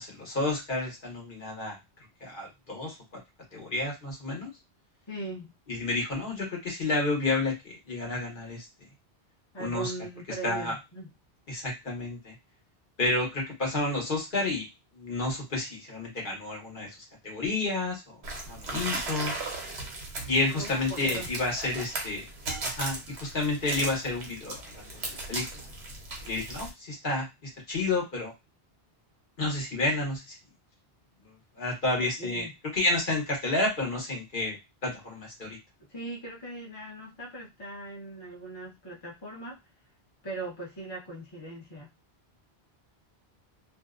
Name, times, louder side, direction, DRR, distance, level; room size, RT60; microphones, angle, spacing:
voice 1, 0.0-1.8 2.2-3.0 3.5-4.5 5.7-8.7 9.6-9.9 10.4-10.7 11.5-12.3 13.0-14.7 14.9-17.0 17.2-18.2 18.5-19.3 20.2-22.2 22.6-25.4 26.2-28.3 29.4-30.3 31.6-32.5 32.7-34.6 34.8-35.6, left 2 dB, 55° left, -1 dB, 1.0 m, -30 dB
voice 2, 5.1-5.5 9.5-11.1 20.5-21.3 32.0-32.5 35.9-39.6 40.2-41.9, right 3 dB, 30° left, -4 dB, 0.7 m, -39 dB
sound 1, 18.2-26.7, right 2 dB, 85° right, 1.0 m, -37 dB
2.6 x 2.1 x 2.3 m, 0.23 s
omnidirectional pair, 1.1 m